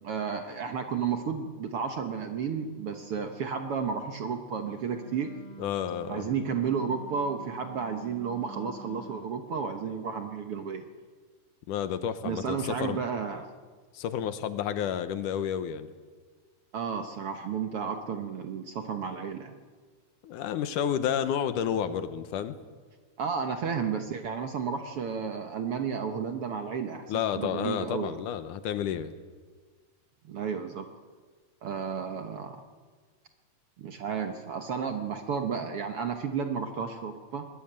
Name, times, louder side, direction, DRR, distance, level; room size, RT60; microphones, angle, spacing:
voice 1, 0.0-5.3 6.1-10.8 12.2-13.5 16.7-19.5 23.2-28.2 30.2-30.9 31.6-32.6 33.8-37.5, right 6 dB, 60° right, 5 dB, 1.7 m, -32 dB
Wind instrument woodwind instrument, 4.6-9.3, right 2 dB, 30° left, 4.2 m, -47 dB
voice 2, 5.6-6.3 11.7-13.0 13.9-15.9 20.2-22.6 27.1-29.1, left 9 dB, 75° left, 11 dB, 2.5 m, -30 dB
21.5 x 20.5 x 8.8 m, 1.5 s
omnidirectional pair, 3.8 m